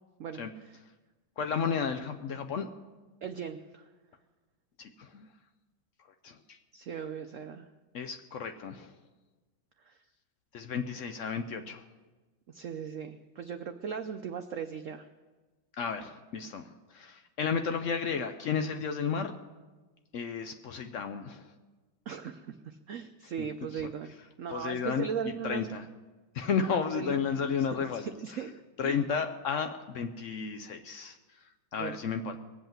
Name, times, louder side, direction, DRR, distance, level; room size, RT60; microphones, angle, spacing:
voice 1, 0.2-0.8 3.2-3.8 6.7-7.7 9.8-10.0 12.5-15.1 22.1-24.1 24.4-25.7 26.6-27.7 27.9-28.5 28.8-29.0 31.8-32.0, right 7 dB, 85° right, 7 dB, 0.6 m, -38 dB
voice 2, 1.4-2.7 4.8-5.3 6.2-6.4 7.9-8.9 10.5-11.8 15.8-19.3 20.1-21.4 23.7-23.8 24.5-25.1 25.4-25.8 26.3-28.4 28.8-31.2 31.7-32.4, left 6 dB, 90° left, 7 dB, 0.6 m, -32 dB
20.5 x 7.9 x 7.3 m, 1.3 s
omnidirectional pair, 2.1 m